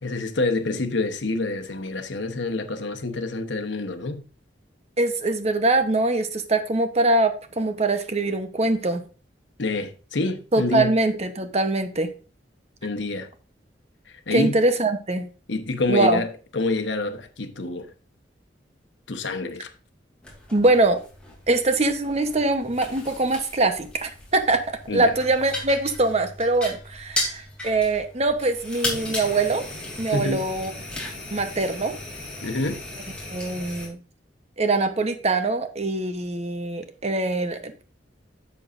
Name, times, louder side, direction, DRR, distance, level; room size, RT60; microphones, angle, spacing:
voice 1, 0.0-4.2 9.6-10.9 12.8-13.3 14.1-14.6 15.5-16.3 16.5-17.9 19.1-19.7 24.9-25.2 30.1-30.5 32.4-32.8, left 2 dB, 85° left, 1.1 m, -27 dB
voice 2, 5.0-9.1 10.5-12.1 14.3-15.3 15.9-16.2 20.5-21.0 21.5-24.6 24.9-29.7 30.0-30.7 31.3-32.0 33.3-34.0 34.6-37.8, right 2 dB, 35° right, 1.0 m, -23 dB
sound 1, 20.2-33.9, left 1 dB, 5° left, 2.9 m, -36 dB
10.5 x 7.1 x 2.6 m
head